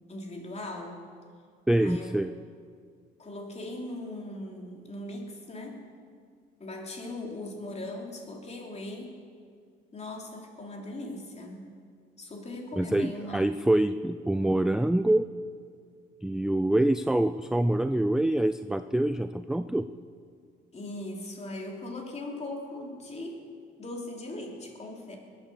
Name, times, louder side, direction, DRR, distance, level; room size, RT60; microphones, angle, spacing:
voice 1, 0.1-1.0 1.8-2.2 3.2-5.8 6.6-9.2 9.9-11.7 12.2-13.4 20.7-23.4 23.8-25.2, left 1 dB, 35° left, 1 dB, 3.1 m, -39 dB
voice 2, 1.7-2.3 12.8-15.2 16.2-19.9, right 1 dB, 5° right, 11 dB, 0.4 m, -25 dB
21.5 x 8.8 x 6.8 m, 2.1 s
cardioid pair, 90°, 20 cm